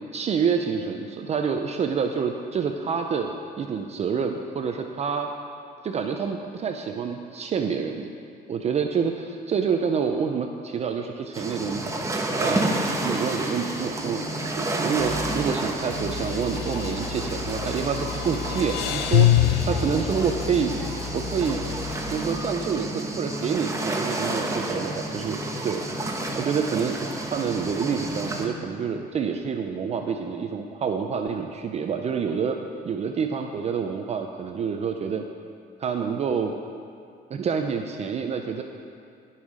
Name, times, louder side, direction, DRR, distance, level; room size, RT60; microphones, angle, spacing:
voice 1, 0.1-5.3 5.8-8.1 8.5-11.8 12.4-14.2 14.6-21.6 22.1-25.4 25.6-26.0 26.4-32.6 32.8-35.2 35.8-36.5 37.3-38.6, right 6 dB, 40° right, 5 dB, 0.6 m, -27 dB
sound 1, 11.3-28.5, right 2 dB, 20° right, 1.2 m, -30 dB
sound 2, 13.6-13.9 14.3-14.4 16.2-17.6 18.0-21.0, left 12 dB, 80° left, 0.7 m, -25 dB
sound 3, 15.0-15.5 15.9-22.4, left 5 dB, 35° left, 1.5 m, -36 dB
17.0 x 5.7 x 4.9 m, 2.4 s
cardioid pair, 110°, 17 cm